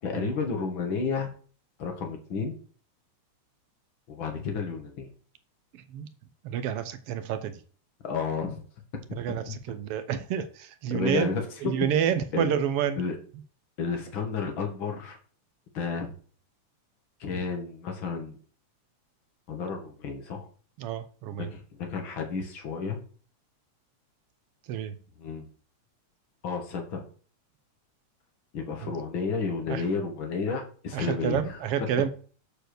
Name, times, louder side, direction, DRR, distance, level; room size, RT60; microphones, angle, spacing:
voice 1, 0.0-1.3 1.8-2.5 4.1-5.1 8.0-8.6 10.9-11.7 12.3-12.5 13.0-13.1 13.8-15.2 15.7-16.1 17.2-18.4 19.5-20.5 21.3-23.0 25.2-25.5 26.4-27.0 28.5-31.6, left 5 dB, 45° left, 3 dB, 2.3 m, -31 dB
voice 2, 5.7-6.1 6.4-7.6 9.2-11.3 11.6-13.0 20.8-21.5 24.7-25.0 28.8-28.9 29.7-29.8 30.9-32.1, right 9 dB, 70° right, 11 dB, 1.4 m, -29 dB
7.8 x 4.6 x 6.7 m, 0.42 s
omnidirectional pair, 3.4 m